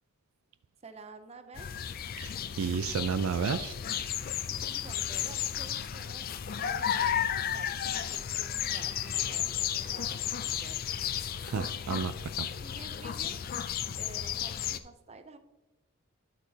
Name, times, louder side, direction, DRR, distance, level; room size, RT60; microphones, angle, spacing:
voice 1, 0.8-1.8 4.7-10.8 12.6-13.4 14.0-15.4, right 3 dB, 30° right, 9 dB, 0.6 m, -50 dB
sound 1, 1.6-14.8, left 9 dB, 40° left, 0.4 m, -33 dB
voice 2, 2.2-3.7 11.4-12.1 12.4-12.5, right 6 dB, 75° right, 13 dB, 0.4 m, -31 dB
12.0 x 6.6 x 2.8 m, 1.1 s
head